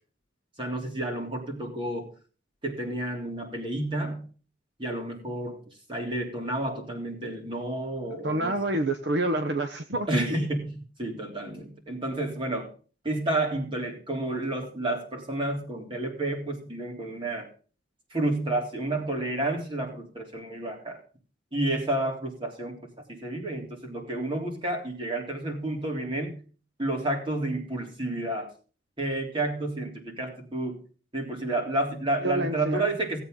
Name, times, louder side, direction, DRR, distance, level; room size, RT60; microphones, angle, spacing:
voice 1, 0.6-2.1 2.6-4.3 4.8-5.6 5.9-8.6 10.1-12.7 13.0-17.5 18.1-21.0 21.5-26.4 26.8-28.5 29.0-30.8 31.1-33.2, right 1 dB, 30° right, 1 dB, 3.4 m, -30 dB
voice 2, 8.2-10.1 32.2-32.8, right 2 dB, 65° right, 8 dB, 1.0 m, -27 dB
17.5 x 8.2 x 3.8 m, 0.37 s
head